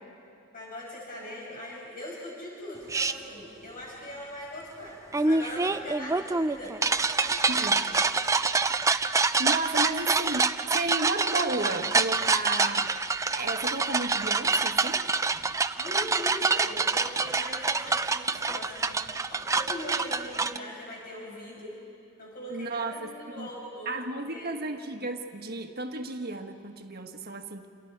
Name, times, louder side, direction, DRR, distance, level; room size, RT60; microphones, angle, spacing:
voice 1, 0.5-8.1 15.7-19.0 19.3-21.7 22.2-24.0 24.3-24.5, left 1 dB, 45° left, -3 dB, 5.7 m, -41 dB
sound 1, 2.9-3.1 5.1-20.6, right 4 dB, 15° right, 0.5 m, -26 dB
voice 2, 7.5-7.9 9.0-12.9 13.3-15.0 22.5-23.1 23.4-23.5 23.8-27.7, right 2 dB, 50° right, 4 dB, 1.5 m, -33 dB
28.0 x 28.0 x 4.8 m, 2.6 s
head